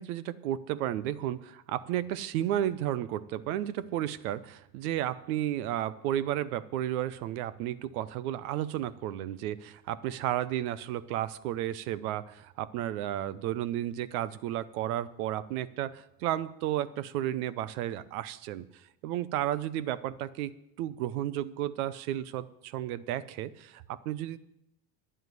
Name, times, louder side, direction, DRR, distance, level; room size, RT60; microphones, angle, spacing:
voice 1, 0.0-18.7 19.0-24.4, right 12 dB, 75° right, 17 dB, 0.8 m, -33 dB
9.9 x 7.8 x 9.4 m, 0.81 s
hypercardioid pair, 85°, 44 cm